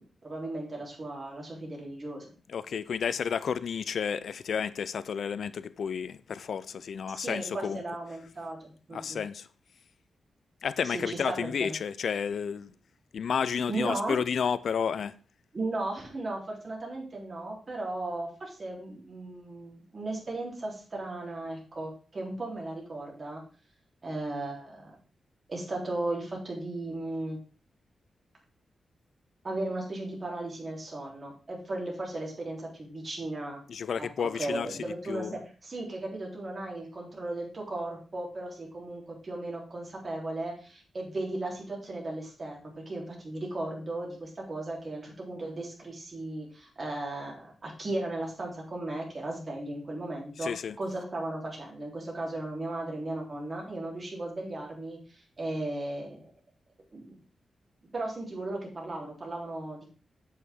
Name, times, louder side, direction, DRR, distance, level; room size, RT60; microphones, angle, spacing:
voice 1, 0.2-2.3 7.1-9.2 10.8-11.8 13.7-14.2 15.5-23.4 24.0-25.0 25.5-27.4 29.4-33.6 34.0-34.1 34.3-55.0 55.4-56.2 56.9-57.2 57.9-59.9, right 2 dB, 40° right, 3.5 m, -36 dB
voice 2, 2.5-7.8 8.9-9.5 10.6-12.7 13.1-15.1 33.7-34.7 35.1-35.4 50.4-50.8, left 7 dB, 70° left, 0.4 m, -31 dB
8.4 x 8.0 x 3.6 m
wide cardioid pair, 105°, 0 cm